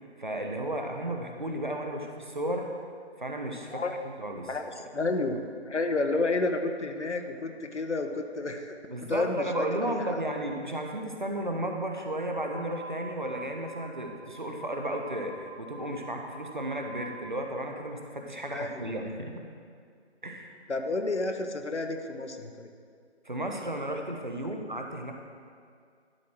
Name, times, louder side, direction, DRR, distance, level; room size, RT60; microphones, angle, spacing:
voice 1, 0.2-2.7 3.2-3.8 4.2-4.5 8.9-19.3 20.2-20.5 23.2-25.1, right 1 dB, 45° right, 2 dB, 0.9 m, -33 dB
voice 2, 4.5-5.4 5.7-8.8 9.0-9.5 9.8-10.2 18.5-19.2 20.7-22.7, left 3 dB, 85° left, 5 dB, 1.1 m, -31 dB
sound 1, 12.3-17.2, right 1 dB, 65° right, 2.3 m, -46 dB
11.5 x 4.6 x 6.1 m, 2.2 s
figure-of-eight pair, 180°, 34 cm